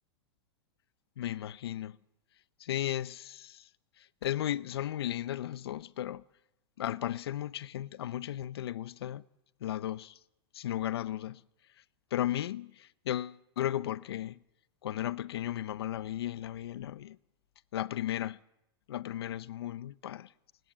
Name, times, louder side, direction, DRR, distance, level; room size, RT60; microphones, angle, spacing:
voice 1, 1.2-2.0 2.6-3.7 4.2-6.2 6.8-9.2 9.6-10.2 10.5-11.4 12.1-14.4 14.8-17.2 17.7-18.4 18.9-20.3, left 12 dB, 85° left, 0.8 m, -35 dB
28.5 x 17.0 x 7.5 m
supercardioid pair, 145°, 13 cm